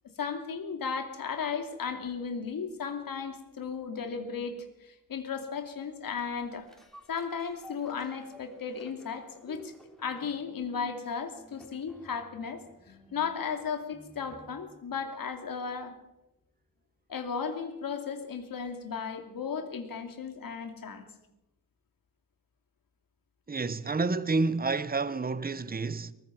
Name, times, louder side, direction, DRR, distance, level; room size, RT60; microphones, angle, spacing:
voice 1, 0.2-6.7 7.1-9.7 10.0-15.9 17.1-21.1, left 6 dB, 85° left, 2.7 m, -35 dB
sound 1, 6.2-14.7 15.2-15.3, left 1 dB, ahead, 3.4 m, -54 dB
voice 2, 23.5-26.1, right 3 dB, 25° right, 1.0 m, -29 dB
22.5 x 20.5 x 6.0 m
wide cardioid pair, 95°, 34 cm